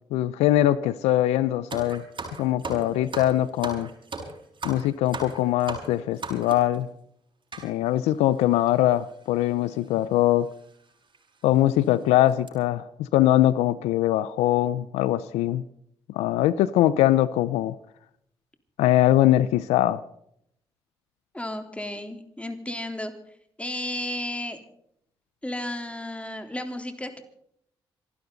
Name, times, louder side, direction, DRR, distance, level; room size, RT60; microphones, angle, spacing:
voice 1, 0.1-2.0 2.4-3.9 4.6-6.9 7.6-10.5 11.4-15.6 16.1-17.7 18.8-20.0, left 14 dB, 85° left, 0.5 m, -22 dB
sound 1, 1.7-6.8 7.5-7.7 8.4-8.5 8.7-8.9 9.8-10.0 10.5-10.6 11.1-11.2 11.7-11.9 12.3-12.5, right 3 dB, 50° right, 6.3 m, -37 dB
voice 2, 21.3-23.1 23.6-24.6 25.4-27.2, left 1 dB, 10° left, 3.7 m, -33 dB
26.5 x 12.5 x 4.0 m
supercardioid pair, 50°, 11 cm